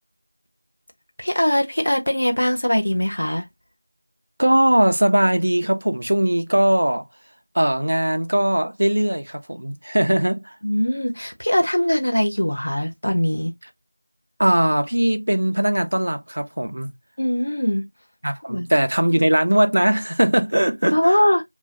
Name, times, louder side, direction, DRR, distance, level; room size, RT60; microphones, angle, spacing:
voice 1, 1.2-3.5 10.6-13.6 17.2-17.9 18.5-18.7 20.9-21.4, equal, 35° left, 0.6 m, -21 dB
voice 2, 4.4-7.0 7.5-10.5 14.4-16.9 18.2-21.1, right 1 dB, 30° right, 0.4 m, -20 dB
2.9 x 2.4 x 2.5 m
figure-of-eight pair, 180°, 0 cm